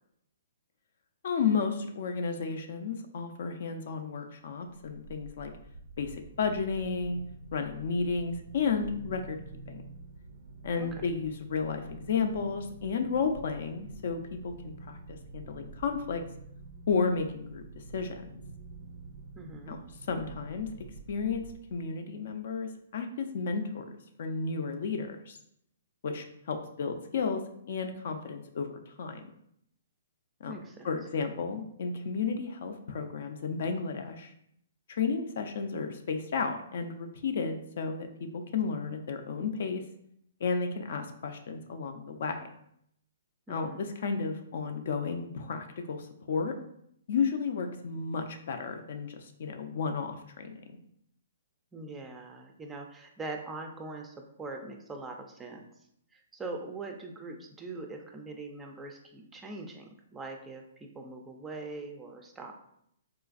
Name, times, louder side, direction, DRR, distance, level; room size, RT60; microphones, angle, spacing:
voice 1, 1.2-5.5 6.0-7.2 7.5-9.4 9.7-9.8 10.6-16.2 16.9-18.4 19.7-20.7 21.1-21.4 21.7-25.4 26.0-27.4 27.7-29.2 30.4-30.5 30.8-34.3 34.9-39.8 40.4-42.5 43.5-46.5 47.1-50.8, left 5 dB, 60° left, 6 dB, 0.4 m, -33 dB
sound 1, 4.7-22.1, right 3 dB, 75° right, 0.4 m, -48 dB
voice 2, 19.3-19.8 30.5-30.9 43.5-43.9 51.7-55.6 56.1-62.5, right 3 dB, 10° right, 3 dB, 0.4 m, -42 dB
3.9 x 2.4 x 2.4 m, 0.72 s
hypercardioid pair, 145°, 0 cm